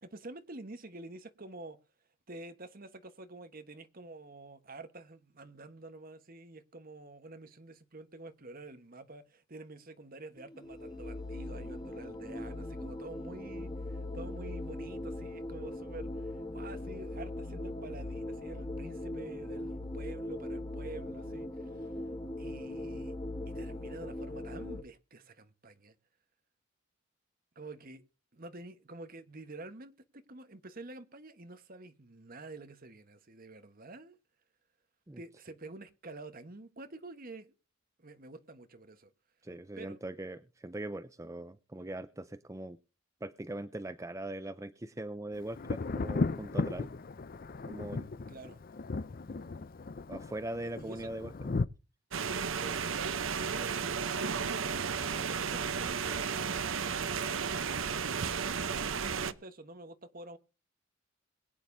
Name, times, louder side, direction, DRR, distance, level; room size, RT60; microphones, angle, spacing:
voice 1, 0.0-1.8 2.3-21.9 22.4-23.1 23.5-25.9 27.5-28.0 28.3-34.2 35.2-37.5 38.0-39.1 39.8-40.0 41.8-41.9 48.3-48.6 50.8-51.6 52.5-52.8 53.4-56.7 58.7-60.4, right 2 dB, 40° right, 1.2 m, -48 dB
sound 1, 10.4-24.8, left 1 dB, 20° left, 1.2 m, -40 dB
voice 2, 39.4-42.8 43.2-46.9 47.6-48.1 50.1-51.5, right 1 dB, 15° right, 0.5 m, -41 dB
Thunder, 45.5-51.7, left 3 dB, 40° left, 0.5 m, -36 dB
sound 2, 52.1-59.3, right 6 dB, 65° right, 0.8 m, -33 dB
22.0 x 9.2 x 2.7 m
head